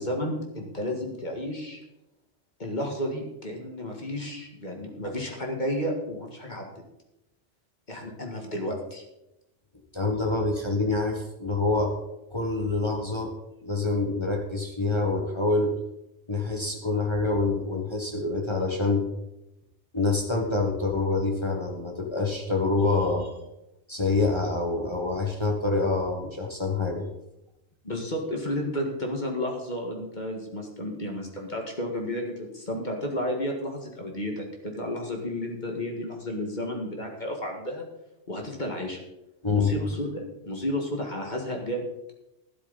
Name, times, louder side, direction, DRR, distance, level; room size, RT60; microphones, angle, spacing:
voice 1, 0.0-1.8 2.6-6.7 7.9-9.0 27.8-37.9 38.3-39.0 39.5-41.8, left 1 dB, 40° left, 1 dB, 2.0 m, -32 dB
voice 2, 9.9-11.9 12.3-13.3 13.6-15.7 16.3-19.0 19.9-23.3 23.9-27.1 39.4-39.7, left 3 dB, 25° left, 0 dB, 1.5 m, -26 dB
12.0 x 11.5 x 4.1 m, 0.90 s
omnidirectional pair, 1.2 m